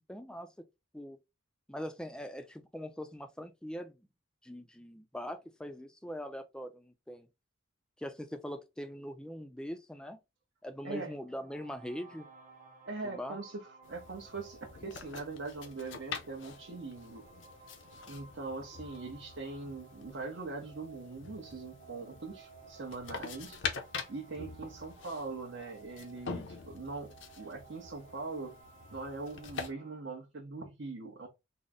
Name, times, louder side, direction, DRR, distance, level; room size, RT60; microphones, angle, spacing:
voice 1, 0.1-0.6 0.9-1.2 1.7-4.1 4.4-7.3 8.0-10.2 10.6-12.3 13.0-13.4, equal, 5° left, 0.4 m, -42 dB
sound 1, 11.2-30.0, right 4 dB, 35° right, 1.2 m, -57 dB
voice 2, 12.8-17.3 18.1-23.6 24.1-28.5 28.9-31.3, right 3 dB, 65° right, 0.8 m, -42 dB
sound 2, 13.8-29.7, left 5 dB, 60° left, 0.6 m, -45 dB
3.9 x 2.0 x 3.5 m
head